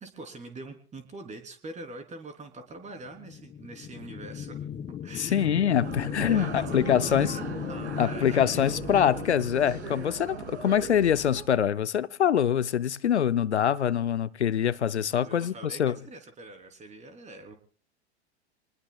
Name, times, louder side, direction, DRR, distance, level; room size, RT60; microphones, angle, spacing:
voice 1, 0.0-4.7 5.0-5.6 6.0-8.6 10.7-10.8 15.1-17.6, right 2 dB, 20° right, 3.5 m, -43 dB
sound 1, 3.0-10.7, left 9 dB, 20° left, 0.7 m, -37 dB
voice 2, 5.2-7.4 8.0-16.0, left 9 dB, 85° left, 0.7 m, -24 dB
sound 2, 5.8-11.4, right 5 dB, 75° right, 3.0 m, -39 dB
28.5 x 20.0 x 2.4 m
hypercardioid pair, 95°, 33 cm